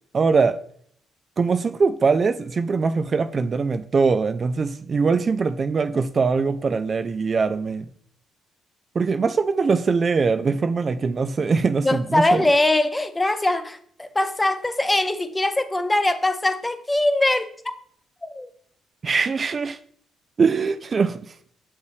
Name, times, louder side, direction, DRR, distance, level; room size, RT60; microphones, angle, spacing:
voice 1, 0.1-0.6 1.4-7.9 8.9-12.5 19.0-19.8 20.4-21.3, right 4 dB, 40° right, 0.3 m, -22 dB
voice 2, 11.8-17.7 18.2-18.5, left 1 dB, 15° left, 0.6 m, -22 dB
6.6 x 5.5 x 3.2 m
cardioid pair, 90°, 0 cm